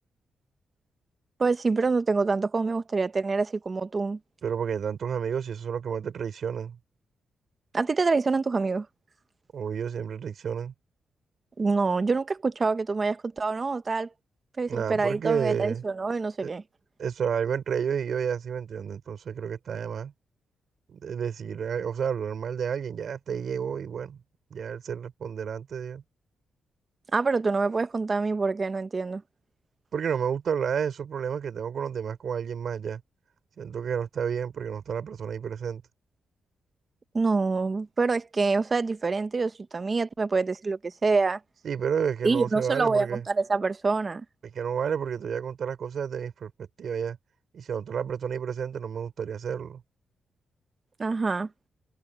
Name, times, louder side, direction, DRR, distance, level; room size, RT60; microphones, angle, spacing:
voice 1, 1.4-4.2 7.7-8.9 11.6-14.1 14.6-16.6 27.1-29.2 37.1-41.4 42.2-44.2 51.0-51.5, right 4 dB, 25° right, 0.9 m, -26 dB
voice 2, 4.4-6.8 9.5-10.7 14.7-15.8 16.4-16.5 17.0-20.1 20.9-24.2 24.5-26.0 29.9-33.0 33.6-35.8 41.6-43.2 44.5-47.2 47.5-49.8, right 7 dB, 55° right, 5.8 m, -31 dB
wide cardioid pair, 150°, 0 cm